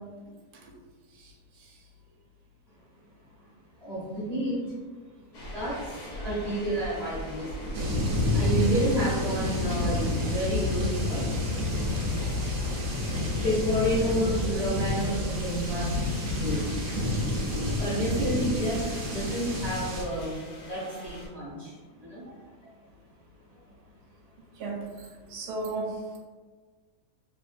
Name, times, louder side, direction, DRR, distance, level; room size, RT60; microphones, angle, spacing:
voice 1, 1.1-1.7 12.0-12.2 24.4-26.0, right 3 dB, 80° right, -1 dB, 1.1 m, -37 dB
voice 2, 3.8-4.6 5.3-7.8 8.3-11.2 13.4-16.0 16.2-16.7 17.8-22.4, equal, 35° left, -10 dB, 0.7 m, -30 dB
sound 1, 5.3-21.3, right 1 dB, 80° left, 1.3 m, -40 dB
sound 2, 7.7-20.0, left 1 dB, 65° right, 0.9 m, -29 dB
3.1 x 2.2 x 2.4 m, 1.4 s
omnidirectional pair, 1.7 m